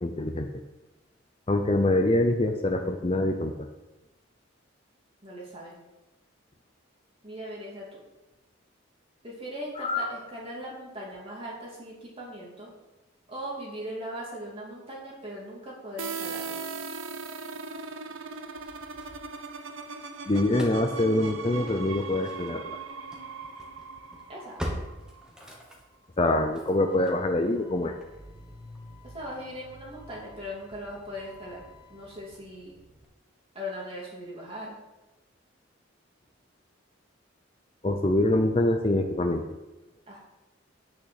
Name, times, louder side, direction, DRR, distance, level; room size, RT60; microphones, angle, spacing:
voice 1, 0.0-0.5 1.5-3.5 9.8-10.1 20.3-22.8 26.2-27.9 37.8-39.4, left 1 dB, 30° left, 4 dB, 0.6 m, -25 dB
voice 2, 5.2-5.8 7.2-8.0 9.2-12.7 13.3-16.6 24.3-24.6 29.0-32.8 33.5-34.8 40.1-40.2, equal, 30° right, -4 dB, 2.8 m, -39 dB
sound 1, 16.0-25.6, right 5 dB, 85° right, 0.8 m, -39 dB
Engine starting / Slam, 18.3-19.7 20.0-33.1, equal, 5° right, 1.3 m, -45 dB
8.5 x 6.7 x 6.6 m, 1.0 s
head